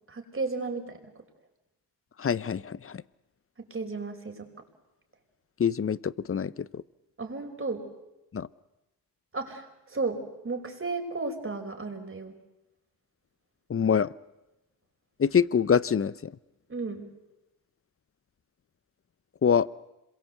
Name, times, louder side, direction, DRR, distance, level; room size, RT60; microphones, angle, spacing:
voice 1, 0.1-1.1 3.6-4.5 7.2-7.8 9.3-12.3 16.7-17.1, right 3 dB, 35° right, 4 dB, 5.3 m, -34 dB
voice 2, 2.2-3.0 5.6-6.8 8.3-8.5 13.7-14.1 15.2-16.3 19.4-19.7, left 7 dB, 40° left, 19 dB, 0.8 m, -25 dB
27.0 x 22.5 x 8.0 m, 0.98 s
cardioid pair, 65°, 36 cm